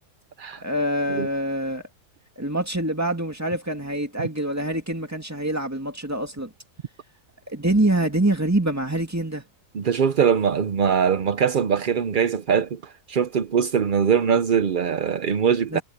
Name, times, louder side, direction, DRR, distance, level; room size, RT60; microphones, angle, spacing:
voice 1, 0.6-1.9 2.4-6.5 7.5-9.4 15.7-15.8, right 1 dB, 10° right, 2.4 m, -25 dB
voice 2, 9.7-15.8, right 7 dB, 60° right, 0.5 m, -22 dB
omnidirectional pair, 1.7 m